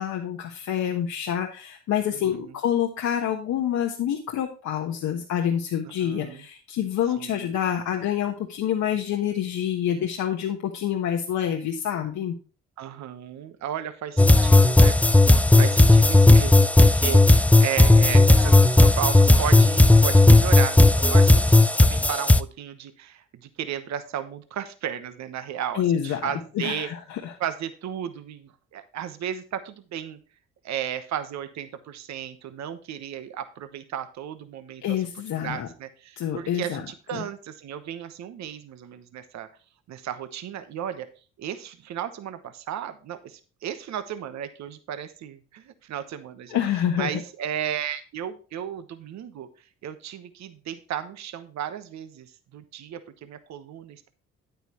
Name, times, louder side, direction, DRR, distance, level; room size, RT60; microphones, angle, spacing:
voice 1, 0.0-12.3 25.7-27.4 34.8-35.7 36.2-37.2 46.5-47.2, left 9 dB, 65° left, 2 dB, 1.3 m, -27 dB
voice 2, 2.1-2.5 6.0-6.4 7.2-7.5 12.8-15.0 15.6-26.9 27.4-30.2 30.6-34.8 35.3-39.5 39.9-41.1 41.4-46.6 47.0-49.5 49.8-54.1, right 9 dB, 60° right, 10 dB, 1.1 m, -34 dB
sound 1, 14.2-22.4, left 2 dB, 5° left, 0.5 m, -15 dB
9.2 x 9.1 x 3.0 m, 0.36 s
hypercardioid pair, 60°, 31 cm